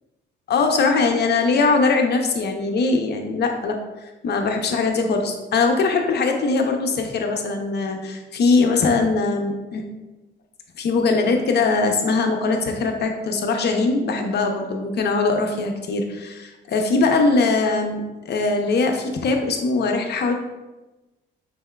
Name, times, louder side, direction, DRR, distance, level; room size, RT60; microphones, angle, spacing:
voice 1, 0.5-9.9 10.8-20.3, left 3 dB, 55° left, 4 dB, 0.6 m, -21 dB
5.7 x 3.4 x 2.2 m, 1.1 s
cardioid pair, 90°, 20 cm